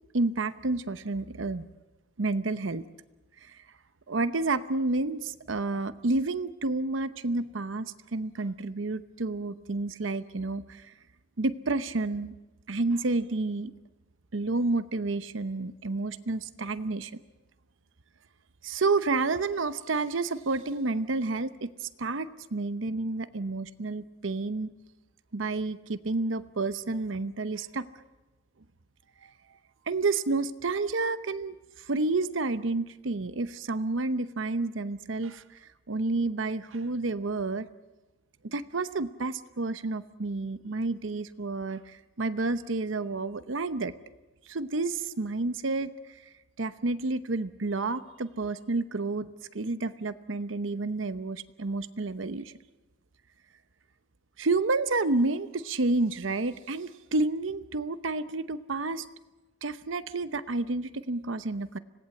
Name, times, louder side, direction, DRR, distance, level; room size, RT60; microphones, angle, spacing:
voice 1, 0.1-1.6 2.2-2.8 3.4-3.6 4.1-10.9 11.4-12.3 12.7-13.7 14.3-17.1 18.6-24.7 25.3-27.9 29.2-29.3 29.9-37.7 38.4-43.9 44.5-45.9 46.6-49.3 49.5-52.5 54.4-59.0 59.6-61.8, right 3 dB, 80° right, 12 dB, 0.9 m, -30 dB
26.0 x 18.0 x 7.8 m, 1.1 s
head